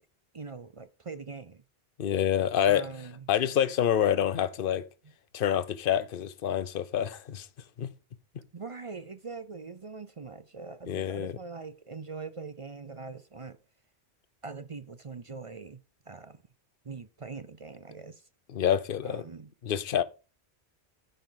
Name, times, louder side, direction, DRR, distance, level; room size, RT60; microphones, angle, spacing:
voice 1, 0.3-1.6 2.7-3.3 8.5-13.6 14.4-15.8 16.1-16.4 16.8-18.2 19.0-19.5, right 4 dB, 40° right, 0.5 m, -42 dB
voice 2, 2.0-2.9 3.3-4.9 5.3-7.5 7.8-7.9 10.9-11.4 18.5-19.2 19.6-20.0, left 9 dB, 55° left, 0.9 m, -27 dB
9.4 x 9.2 x 3.9 m
omnidirectional pair, 1.1 m